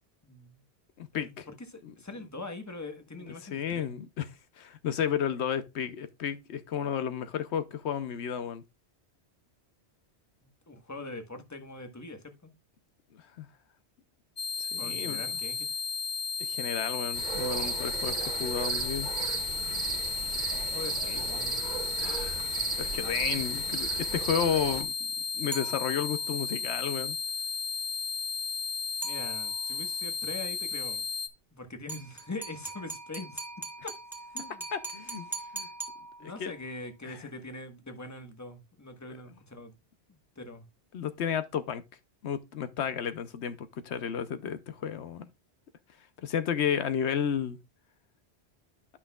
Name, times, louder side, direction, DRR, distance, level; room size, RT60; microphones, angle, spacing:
voice 1, 0.2-0.6 1.1-3.9 10.4-12.5 14.8-15.7 20.5-21.6 29.0-31.0 31.5-33.4 34.3-34.6 36.2-39.7 40.1-40.6, left 2 dB, 15° left, 1.2 m, -42 dB
voice 2, 1.0-1.4 1.8-1.9 3.5-4.3 4.6-8.6 13.1-13.5 14.6-15.2 16.4-19.1 22.0-24.9 25.4-27.2 34.7-35.3 35.5-35.7 36.2-36.5 37.0-37.3 40.9-41.8 42.2-45.3 46.2-47.6, left 8 dB, 80° left, 1.0 m, -32 dB
sound 1, 14.4-31.3, left 5 dB, 35° left, 0.9 m, -34 dB
sound 2, 17.1-24.8, right 6 dB, 45° right, 0.8 m, -35 dB
sound 3, 25.5-26.3 29.0-29.8 31.9-36.6, right 3 dB, ahead, 1.8 m, -41 dB
12.0 x 5.8 x 2.3 m
omnidirectional pair, 1.1 m